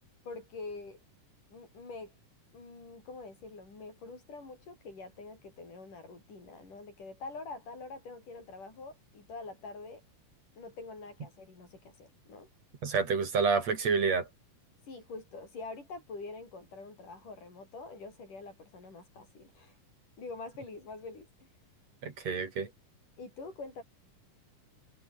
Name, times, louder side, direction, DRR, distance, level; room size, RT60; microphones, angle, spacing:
voice 1, 0.2-1.0 1.5-2.2 2.5-10.0 10.6-12.5 14.9-19.8 20.2-21.5 23.2-23.8, left 3 dB, 70° left, 9.7 m, -45 dB
voice 2, 12.8-14.3 22.0-22.7, right 5 dB, 55° right, 4.3 m, -28 dB
omnidirectional pair, 3.8 m